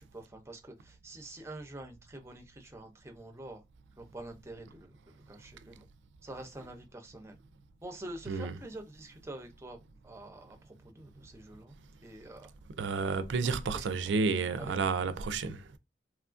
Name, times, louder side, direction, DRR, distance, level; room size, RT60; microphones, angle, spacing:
voice 1, 0.0-3.6 4.0-5.0 5.3-5.8 6.2-7.4 7.8-9.8 10.0-12.5 13.4-14.1 14.5-14.7, right 1 dB, 15° right, 0.5 m, -47 dB
voice 2, 12.8-15.6, right 4 dB, 85° right, 0.4 m, -31 dB
3.0 x 2.3 x 2.4 m
head